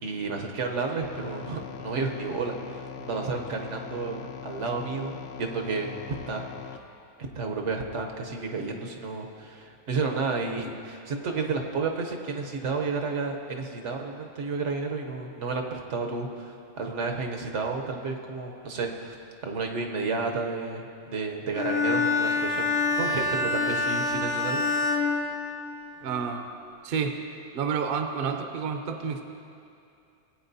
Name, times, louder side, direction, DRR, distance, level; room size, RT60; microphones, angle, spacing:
voice 1, 0.0-5.9 6.3-6.5 7.3-19.1 19.4-24.6 24.9-25.1, right 4 dB, 80° right, 2 dB, 1.2 m, -31 dB
sound 1, 1.0-6.8, left 8 dB, 90° left, 0.9 m, -41 dB
Bowed string instrument, 21.5-26.0, left 3 dB, 40° left, 0.7 m, -26 dB
voice 2, 26.0-26.5 26.8-27.2 27.5-29.3, right 6 dB, 55° right, 6 dB, 0.7 m, -29 dB
17.5 x 8.7 x 2.7 m, 2.6 s
omnidirectional pair, 1.2 m